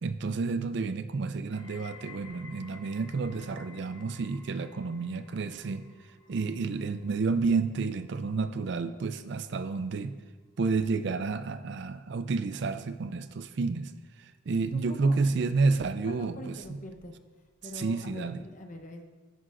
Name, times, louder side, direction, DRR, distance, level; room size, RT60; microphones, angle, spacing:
voice 1, 0.0-5.9 6.3-10.1 10.6-13.9 14.2-16.5 17.7-18.4, right 4 dB, 55° right, 11 dB, 0.4 m, -30 dB
sound 1, 1.5-12.6 12.9-13.5 14.2-14.3, left 3 dB, 20° left, 1.6 m, -55 dB
voice 2, 14.5-15.4 16.1-17.1 17.6-19.0, left 1 dB, 40° left, 4 dB, 0.9 m, -44 dB
9.8 x 9.5 x 2.5 m, 1.3 s
head